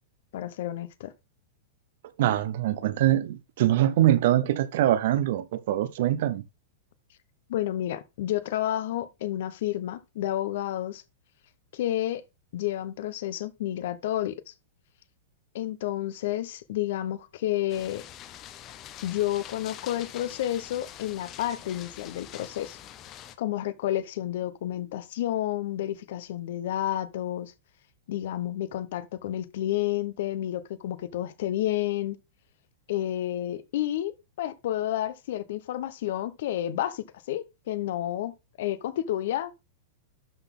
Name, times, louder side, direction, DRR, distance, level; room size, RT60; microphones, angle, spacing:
voice 1, 0.3-1.1 7.5-11.0 11.7-12.2 12.5-14.5 15.5-18.0 19.0-22.8 23.4-27.5 28.1-32.2 32.9-39.6, left 13 dB, 50° left, 0.8 m, -30 dB
voice 2, 2.2-6.4, right 13 dB, 45° right, 0.7 m, -23 dB
sound 1, 17.7-23.4, left 11 dB, 20° left, 0.6 m, -45 dB
12.0 x 4.0 x 3.7 m
supercardioid pair, 180°, 0 cm